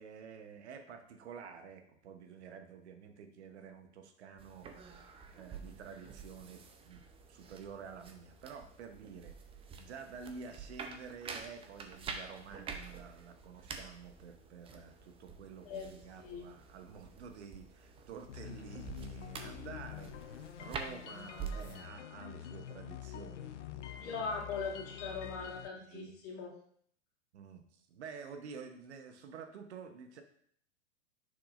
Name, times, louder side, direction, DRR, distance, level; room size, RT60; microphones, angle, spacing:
voice 1, 0.0-7.0 7.3-9.4 9.8-24.2 25.8-26.1 27.3-30.2, right 6 dB, 70° right, 6 dB, 1.0 m, -50 dB
sound 1, 4.4-21.7, right 5 dB, 15° right, 0.5 m, -48 dB
sound 2, 18.3-25.7, left 11 dB, 80° left, 0.5 m, -47 dB
voice 2, 24.0-26.5, left 5 dB, 40° left, -3 dB, 2.2 m, -40 dB
6.2 x 6.0 x 2.5 m, 0.63 s
hypercardioid pair, 110°, 35 cm